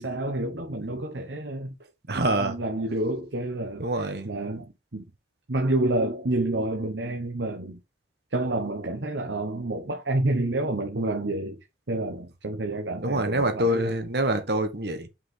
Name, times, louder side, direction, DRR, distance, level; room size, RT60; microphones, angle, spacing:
voice 1, 0.0-1.7 2.1-5.0 5.5-7.8 8.3-13.9, right 2 dB, 85° right, 1.1 m, -29 dB
voice 2, 2.1-2.6 3.8-4.3 13.0-15.1, right 1 dB, 60° right, 1.3 m, -25 dB
5.6 x 5.3 x 3.8 m
head